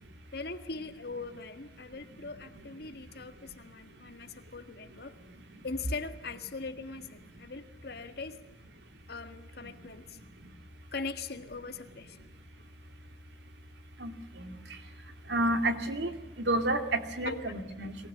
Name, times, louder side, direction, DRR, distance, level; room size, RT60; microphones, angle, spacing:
voice 1, 0.3-5.1 5.6-8.4 9.1-10.2 10.9-12.2 17.2-17.4, left 4 dB, 60° left, 9 dB, 1.7 m, -41 dB
voice 2, 14.0-14.5 15.3-16.1 16.4-18.0, right 1 dB, 75° right, 7 dB, 2.5 m, -30 dB
23.0 x 19.0 x 8.7 m, 1.0 s
head